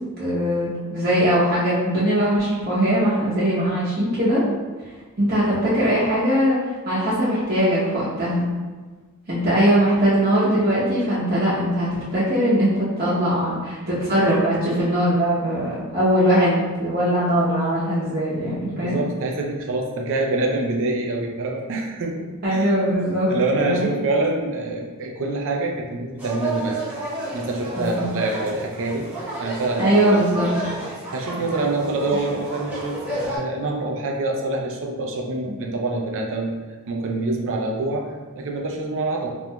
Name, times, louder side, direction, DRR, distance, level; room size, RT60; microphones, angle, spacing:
voice 1, 0.2-4.4 5.2-6.6 6.8-8.4 9.3-19.0 22.4-23.9 27.8-28.0 29.8-30.5 35.5-35.6, equal, 45° right, -10 dB, 0.9 m, -21 dB
voice 2, 18.7-22.7 23.3-26.8 27.3-29.1 29.4-30.2 31.1-36.5 36.9-39.3, right 2 dB, 60° right, 1 dB, 0.5 m, -26 dB
sound 1, 26.2-33.4, right 2 dB, 10° right, 0.9 m, -31 dB
4.4 x 2.6 x 2.2 m, 1.3 s
head